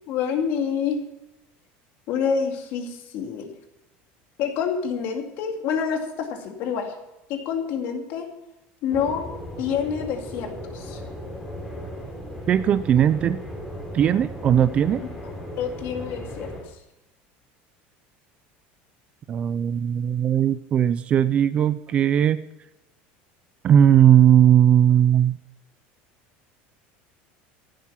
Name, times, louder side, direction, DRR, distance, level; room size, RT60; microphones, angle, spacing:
voice 1, 0.1-1.0 2.1-3.5 4.4-7.0 7.3-8.3 8.8-9.3 9.6-11.0 15.6-16.5, left 7 dB, 45° left, 4 dB, 2.3 m, -27 dB
sound 1, 8.9-16.6, left 1 dB, 5° left, 3.4 m, -36 dB
voice 2, 12.5-13.4 13.9-15.0 19.3-22.4 23.6-25.4, right 9 dB, 25° right, 15 dB, 0.4 m, -18 dB
14.0 x 11.5 x 5.8 m, 0.94 s
cardioid pair, 175°, 5 cm